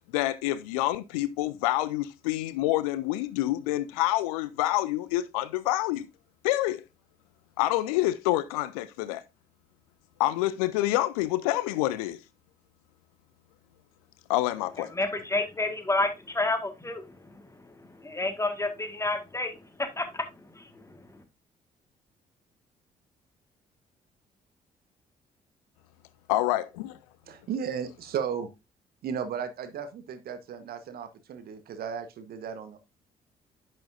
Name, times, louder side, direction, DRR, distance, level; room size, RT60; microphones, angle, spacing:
voice 1, 0.1-6.1 6.4-6.8 7.6-9.2 10.2-12.2 14.3-14.9 26.3-27.0, left 16 dB, 65° left, 0.5 m, -27 dB
voice 2, 14.8-20.3 20.5-21.2, left 2 dB, 15° left, 1.6 m, -31 dB
voice 3, 27.3-28.5 29.0-32.8, right 7 dB, 50° right, 1.1 m, -35 dB
10.0 x 6.3 x 2.5 m
figure-of-eight pair, 45°, 20 cm